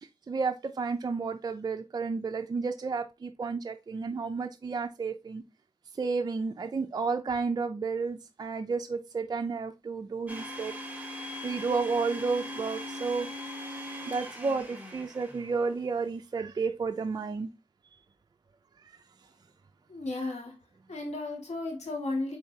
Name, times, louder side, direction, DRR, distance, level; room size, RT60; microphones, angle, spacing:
voice 1, 0.3-5.4 6.0-10.7 11.4-13.3 14.1-17.5, right 4 dB, 35° right, 0.4 m, -31 dB
Domestic sounds home sounds, 10.3-15.8, left 1 dB, 15° right, 1.1 m, -40 dB
voice 2, 19.9-20.5 20.9-22.4, left 2 dB, 80° left, 1.8 m, -34 dB
4.7 x 3.8 x 2.7 m
wide cardioid pair, 85°, 11 cm